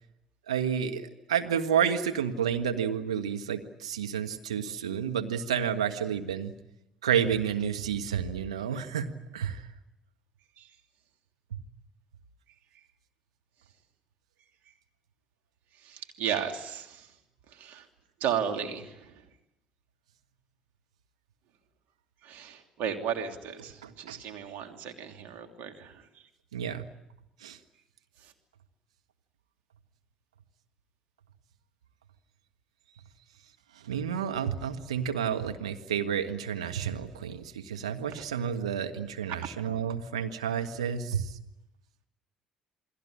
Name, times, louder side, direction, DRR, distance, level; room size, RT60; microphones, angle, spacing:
voice 1, 0.5-6.5 7.0-9.6 11.5-11.6 23.8-24.2 26.5-26.9 27.4-27.6 33.8-41.4, right 8 dB, 80° right, 6 dB, 1.6 m, -30 dB
voice 2, 15.9-17.0 17.6-17.8 18.2-19.0 22.2-25.9 38.1-38.2, right 8 dB, 60° right, 5 dB, 3.0 m, -34 dB
29.0 x 21.0 x 8.8 m, 0.89 s
figure-of-eight pair, 55°, 3 cm